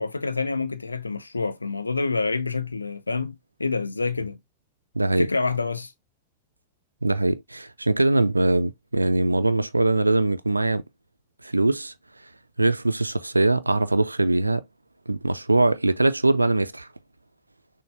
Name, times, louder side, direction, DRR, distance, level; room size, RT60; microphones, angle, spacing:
voice 1, 0.0-4.4 5.2-5.9, left 4 dB, 80° left, 0.5 m, -27 dB
voice 2, 5.0-5.3 7.0-10.8 11.4-11.9 12.6-14.6 15.1-16.9, right 2 dB, 85° right, 0.3 m, -22 dB
6.4 x 2.2 x 3.2 m
figure-of-eight pair, 90°, 0 cm